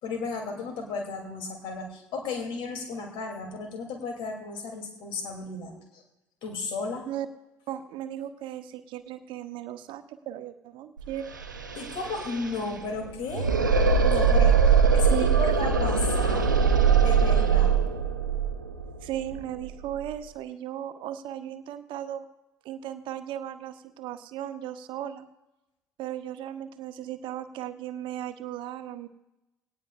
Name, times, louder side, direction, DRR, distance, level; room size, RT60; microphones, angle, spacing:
voice 1, 0.0-6.0 6.4-7.1 11.8-13.5 14.0-16.5 17.0-17.8, left 4 dB, 55° left, 3 dB, 2.8 m, -34 dB
voice 2, 7.7-11.3 15.1-15.6 19.0-22.3 22.6-25.3 26.0-29.1, right 11 dB, 55° right, 11 dB, 0.8 m, -36 dB
sound 1, 11.0-11.1 11.3-20.1, right 6 dB, 85° right, 0.7 m, -22 dB
19.0 x 18.0 x 2.5 m, 0.97 s
figure-of-eight pair, 50°, 10 cm